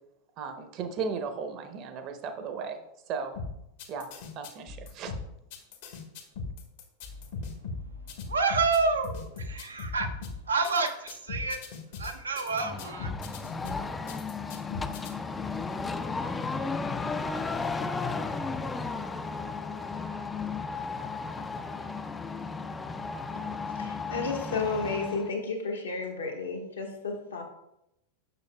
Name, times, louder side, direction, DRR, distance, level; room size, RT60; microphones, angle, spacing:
voice 1, 0.4-2.8 3.1-3.3 3.9-4.1 4.3-5.1, right 5 dB, 40° right, 7 dB, 0.8 m, -35 dB
sound 1, 3.3-15.1, left 4 dB, 60° left, 1.0 m, -39 dB
voice 2, 8.3-10.1 10.5-11.6 12.0-13.1, right 4 dB, 80° right, 6 dB, 0.6 m, -28 dB
sound 2, 12.5-25.3, left 4 dB, 15° left, 0.4 m, -34 dB
voice 3, 23.6-27.4, left 4 dB, 75° left, 0 dB, 1.2 m, -32 dB
6.9 x 6.3 x 2.2 m, 0.83 s
figure-of-eight pair, 90°, 0 cm